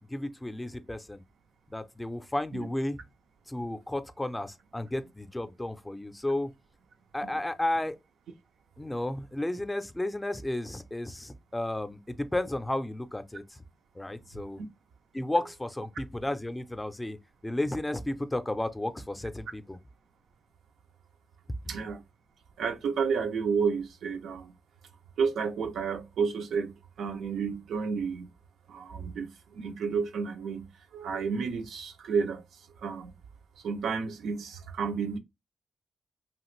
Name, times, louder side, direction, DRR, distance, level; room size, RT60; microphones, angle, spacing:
voice 1, 0.1-1.2 1.7-3.0 3.5-6.5 7.1-8.0 8.8-13.6 13.9-14.6 15.1-17.2 17.4-19.8, left 1 dB, 15° left, 0.4 m, -33 dB
voice 2, 21.7-22.0 22.6-24.5 25.2-28.3 28.7-32.4 32.8-33.1 33.6-35.2, right 5 dB, 85° right, 0.4 m, -31 dB
2.9 x 2.4 x 3.0 m
cardioid pair, 75°, 0 cm